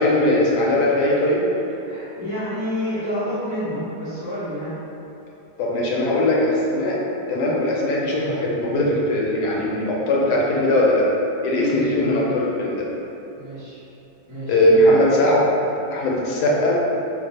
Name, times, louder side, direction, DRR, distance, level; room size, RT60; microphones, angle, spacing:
voice 1, 0.0-1.4 5.6-7.0 7.3-11.1 11.4-12.9 14.5-15.5 15.9-16.8, left 1 dB, 80° left, -3 dB, 1.2 m, -19 dB
voice 2, 1.8-4.7 11.5-11.9 13.3-13.8 14.3-14.6, equal, 35° left, -14 dB, 0.4 m, -29 dB
2.9 x 2.0 x 4.0 m, 2.9 s
omnidirectional pair, 1.8 m